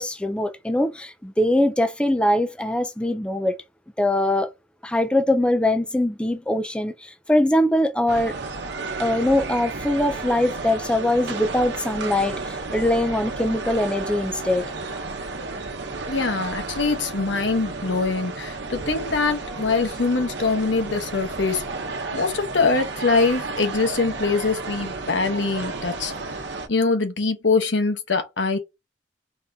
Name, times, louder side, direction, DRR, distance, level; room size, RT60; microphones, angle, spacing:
voice 1, 0.0-3.6 4.0-4.5 4.8-8.3 9.0-14.7, left 1 dB, 5° left, 0.4 m, -22 dB
sound 1, 8.1-26.7, right 3 dB, 65° right, 0.9 m, -32 dB
voice 2, 16.1-21.6 22.1-26.1 26.7-28.6, left 4 dB, 75° left, 1.1 m, -23 dB
4.2 x 3.5 x 2.7 m
head